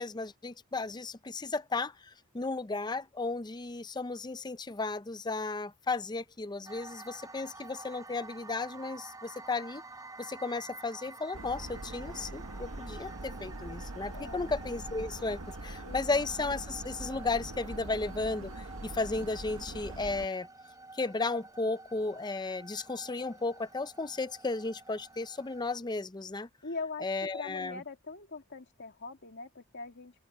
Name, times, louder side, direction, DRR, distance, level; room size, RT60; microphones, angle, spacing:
voice 1, 0.0-1.9 2.3-9.8 10.2-20.5 20.9-26.5 27.0-27.8, left 3 dB, 20° left, 0.6 m, -34 dB
sound 1, 6.7-25.7, right 2 dB, 15° right, 5.3 m, -50 dB
sound 2, 11.3-20.3, right 2 dB, 75° right, 1.4 m, -43 dB
voice 2, 14.1-14.5 15.9-16.2 26.6-27.1 27.3-30.1, left 4 dB, 55° left, 2.2 m, -42 dB
open air
head